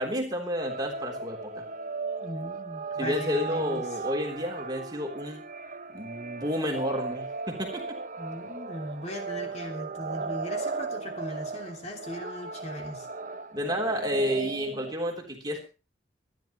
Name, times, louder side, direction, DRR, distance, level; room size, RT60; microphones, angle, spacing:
voice 1, 0.0-1.6 3.0-5.4 5.9-8.0 13.5-15.6, equal, 25° right, 1 dB, 3.5 m, -31 dB
sound 1, 0.6-14.9, right 4 dB, 45° right, 0.7 m, -37 dB
voice 2, 2.2-4.0 8.2-13.1, equal, 40° left, 2 dB, 3.0 m, -38 dB
25.0 x 11.0 x 3.1 m, 0.32 s
head